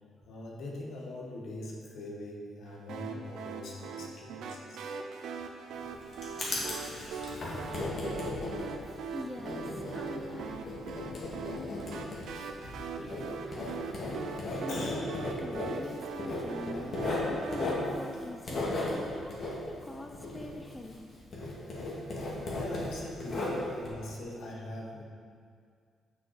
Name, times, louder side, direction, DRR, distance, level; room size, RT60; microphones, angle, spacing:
voice 1, 0.2-4.8 6.3-6.8 12.5-12.7 14.7-15.0 22.1-25.0, left 1 dB, 70° left, -2 dB, 1.4 m, -42 dB
sound 1, 2.9-17.7, right 5 dB, 75° right, 0.6 m, -41 dB
Writing, 5.7-21.1 21.3-23.9, left 2 dB, 50° left, 2.0 m, -36 dB
voice 2, 8.8-10.7 12.9-15.1 15.4-17.0 17.3-21.0, left 1 dB, 10° left, 3 dB, 0.6 m, -44 dB
6.6 x 5.5 x 4.9 m, 2.1 s
cardioid pair, 90°, 0 cm